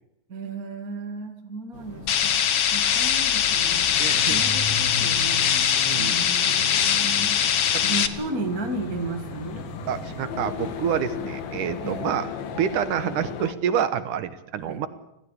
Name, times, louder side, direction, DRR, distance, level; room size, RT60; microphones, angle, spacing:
voice 1, 0.3-3.9 4.3-5.4 5.9-9.7 11.8-12.1 14.6-14.8, right 2 dB, 30° right, 5 dB, 2.3 m, -34 dB
sound 1, 1.7-12.2, left 1 dB, 40° left, 6.9 m, -39 dB
sound 2, 2.1-8.1, left 9 dB, 55° left, 1.7 m, -22 dB
sound 3, 3.4-13.5, left 8 dB, 85° left, 3.5 m, -38 dB
voice 2, 4.0-4.4 5.5-6.3 7.1-7.4 7.7-7.8 9.9-14.9, right 9 dB, 70° right, 13 dB, 2.4 m, -28 dB
26.0 x 17.0 x 8.4 m, 0.86 s
omnidirectional pair, 4.2 m